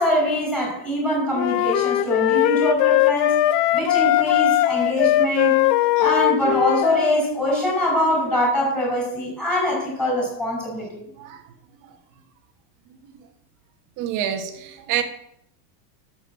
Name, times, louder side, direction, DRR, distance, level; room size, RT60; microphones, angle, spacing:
voice 1, 0.0-3.3 3.7-5.7 6.0-11.0, left 1 dB, ahead, -1 dB, 5.9 m, -23 dB
sound 1, 1.4-7.2, left 14 dB, 75° left, 1.0 m, -20 dB
voice 2, 14.0-15.0, right 10 dB, 35° right, 5 dB, 2.0 m, -27 dB
11.5 x 8.0 x 8.0 m, 0.75 s
supercardioid pair, 160°, 50 cm